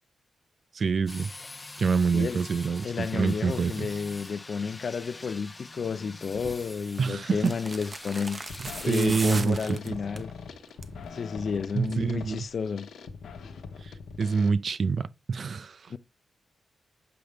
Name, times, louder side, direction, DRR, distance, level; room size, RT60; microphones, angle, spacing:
voice 1, 0.7-1.3 1.8-3.9 7.0-7.6 8.9-10.0 11.7-12.4 13.8-13.9 14.2-15.9, right 5 dB, 55° right, 0.5 m, -26 dB
sound 1, 1.1-9.3, left 2 dB, 25° left, 0.8 m, -45 dB
voice 2, 2.8-8.4 8.8-10.3 11.1-12.9 15.9-16.0, left 5 dB, 60° left, 0.5 m, -31 dB
sound 2, 6.3-6.6 7.4-10.3 10.7-11.0 11.3-11.4, right 3 dB, 35° right, 0.9 m, -38 dB
sound 3, 7.6-7.9 8.2-14.5, left 5 dB, 80° left, 1.2 m, -43 dB
8.0 x 5.1 x 3.5 m
cardioid pair, 70°, 0 cm